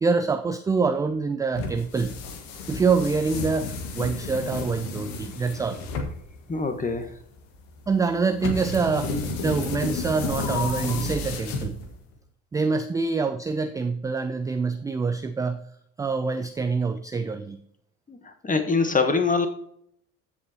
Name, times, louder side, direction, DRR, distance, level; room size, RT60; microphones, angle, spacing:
voice 1, 0.0-2.2 2.7-5.8 7.9-9.1 9.4-11.8 12.5-15.6 16.0-17.6, right 4 dB, 10° right, 9 dB, 0.3 m, -25 dB
sound 1, 1.5-12.1, left 3 dB, 60° left, 1.8 m, -32 dB
voice 2, 6.5-7.1 18.1-19.5, left 4 dB, 15° left, 7 dB, 1.4 m, -24 dB
14.5 x 7.8 x 2.9 m, 0.71 s
figure-of-eight pair, 60°, 46 cm